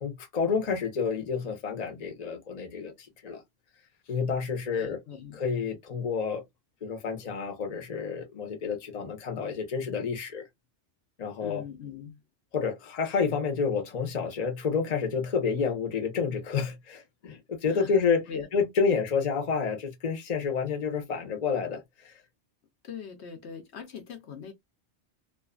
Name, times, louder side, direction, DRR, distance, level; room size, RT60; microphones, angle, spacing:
voice 1, 0.0-2.9 3.2-3.4 4.1-5.0 5.3-6.4 6.8-10.4 11.2-11.6 12.5-18.2 18.5-22.1, left 5 dB, 40° left, 0.8 m, -29 dB
voice 2, 4.7-5.4 11.4-12.2 17.7-17.9 18.3-18.5 22.8-24.5, left 7 dB, 70° left, 1.0 m, -40 dB
2.4 x 2.4 x 2.3 m
omnidirectional pair, 1.2 m